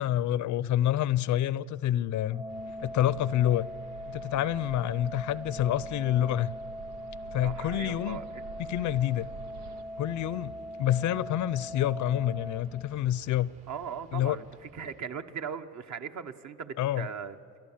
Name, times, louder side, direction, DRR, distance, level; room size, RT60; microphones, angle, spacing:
voice 1, 0.0-2.4 2.8-3.7 4.1-6.5 7.3-8.2 8.7-9.3 10.0-10.5 10.8-13.5 14.1-14.4 16.8-17.1, left 12 dB, 55° left, 0.6 m, -27 dB
Organ, 2.3-13.3, equal, 15° right, 0.8 m, -41 dB
sound 1, 2.5-15.0, right 4 dB, 70° right, 3.8 m, -56 dB
Bird, 2.6-9.8, right 6 dB, 85° right, 1.0 m, -48 dB
voice 2, 7.4-8.4 13.7-17.6, right 7 dB, 50° right, 1.1 m, -39 dB
29.5 x 12.0 x 7.3 m
supercardioid pair, 95°, 36 cm